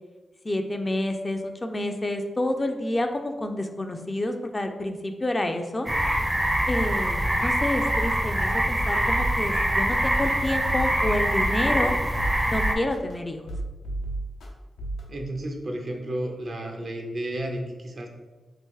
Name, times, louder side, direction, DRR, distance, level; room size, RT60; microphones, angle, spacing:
voice 1, 0.4-5.9 6.7-11.9 12.5-13.5, left 1 dB, 30° left, 5 dB, 0.4 m, -29 dB
sound 1, 5.9-12.8, right 1 dB, 20° right, 0.5 m, -24 dB
sound 2, 9.1-9.3 9.9-10.0 10.5-11.5 12.0-13.1 13.5-14.5 14.8-15.0, right 1 dB, 90° left, 0.6 m, -32 dB
voice 2, 15.1-18.1, right 1 dB, 60° right, 2 dB, 0.6 m, -32 dB
2.8 x 2.5 x 3.7 m, 1.2 s
cardioid pair, 45°, 0 cm